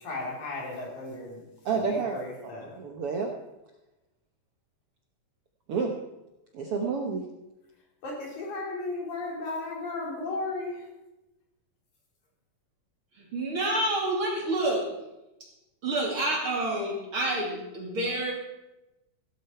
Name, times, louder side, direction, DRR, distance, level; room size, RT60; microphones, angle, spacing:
voice 1, 0.0-1.4 1.7-2.7 8.0-10.8, left 2 dB, 65° left, -2 dB, 4.9 m, -35 dB
voice 2, 1.6-3.3 5.7-5.9 6.5-7.2, right 5 dB, 60° right, 2 dB, 1.6 m, -30 dB
voice 3, 13.1-14.9 15.4-15.5 15.8-18.3, right 1 dB, 40° right, -1 dB, 3.2 m, -28 dB
16.5 x 12.0 x 4.5 m, 0.98 s
omnidirectional pair, 3.7 m